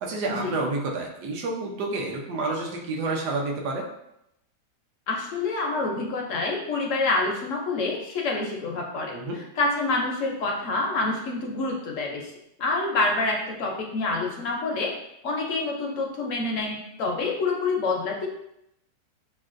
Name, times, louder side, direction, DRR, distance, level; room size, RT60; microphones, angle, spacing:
voice 1, 0.0-3.9 9.1-9.4, right 3 dB, 70° right, 0 dB, 1.2 m, -29 dB
voice 2, 5.1-9.2 9.6-12.3 12.6-14.9 15.2-18.3, left 3 dB, 70° left, 0 dB, 0.7 m, -27 dB
6.2 x 2.2 x 2.5 m, 0.82 s
omnidirectional pair, 1.9 m